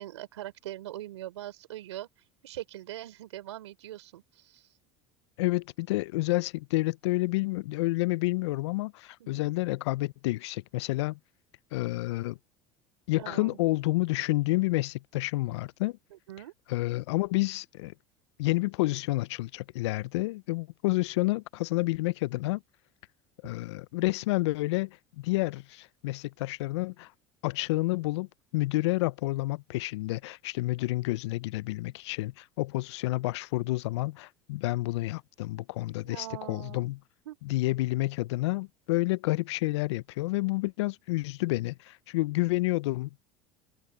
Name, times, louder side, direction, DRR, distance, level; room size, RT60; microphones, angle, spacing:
voice 1, 0.0-2.1 2.4-4.7 9.2-9.5 13.2-13.6 16.1-16.5 36.0-36.9 37.2-37.4, right 14 dB, 85° right, 4.6 m, -42 dB
voice 2, 5.4-11.2 11.7-12.4 13.1-16.0 16.7-17.9 18.4-22.6 23.4-27.1 27.4-28.3 28.5-37.0 37.4-43.1, left 20 dB, 75° left, 0.5 m, -29 dB
hypercardioid pair, 80°, 14 cm